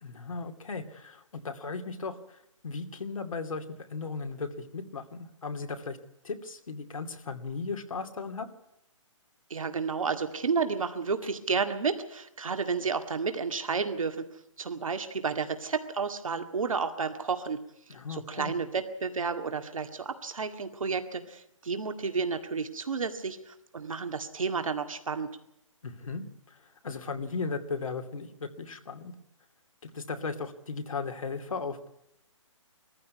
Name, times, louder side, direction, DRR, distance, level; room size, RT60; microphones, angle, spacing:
voice 1, 0.0-2.4 2.6-3.6 3.9-6.0 6.2-8.5 17.9-18.5 25.8-26.2 26.8-29.1 29.8-31.9, left 4 dB, 85° left, 6 dB, 2.6 m, -36 dB
voice 2, 9.5-14.2 14.6-17.6 18.1-25.3, right 5 dB, 90° right, 7 dB, 2.0 m, -31 dB
20.0 x 14.5 x 9.5 m, 0.79 s
hypercardioid pair, 165°, 17 cm